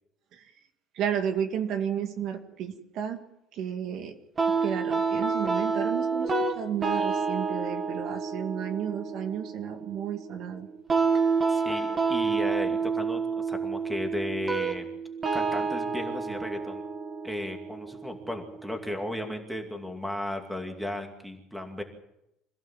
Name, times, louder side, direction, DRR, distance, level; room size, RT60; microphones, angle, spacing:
voice 1, 0.9-3.2 3.5-4.1 4.5-10.7, right 8 dB, 50° right, 6 dB, 2.3 m, -32 dB
sound 1, 4.4-19.3, right 4 dB, 20° right, 2.4 m, -29 dB
voice 2, 11.5-14.9 15.3-16.8 17.2-21.8, left 1 dB, ahead, 4 dB, 2.5 m, -35 dB
26.5 x 16.0 x 7.5 m, 0.82 s
cardioid pair, 175°, 0 cm